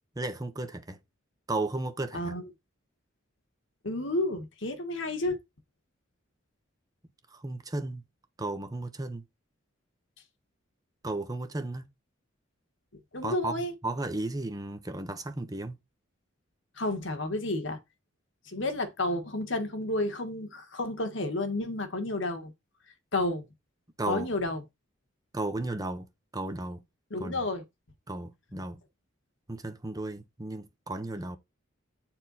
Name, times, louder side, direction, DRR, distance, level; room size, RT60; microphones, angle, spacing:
voice 1, 0.2-1.0 1.5-2.3 7.3-8.0 8.4-9.2 11.0-11.8 13.2-13.5 13.8-15.8 24.0-24.3 25.3-26.1 26.3-26.8 27.2-27.5 28.1-28.8 29.5-31.4, right 2 dB, 20° right, 0.8 m, -34 dB
voice 2, 2.1-2.5 3.8-5.4 13.1-13.7 16.8-17.8 18.5-22.5 23.1-23.4 24.1-24.6 27.1-27.6, left 2 dB, 60° left, 1.6 m, -31 dB
8.9 x 4.4 x 4.1 m
head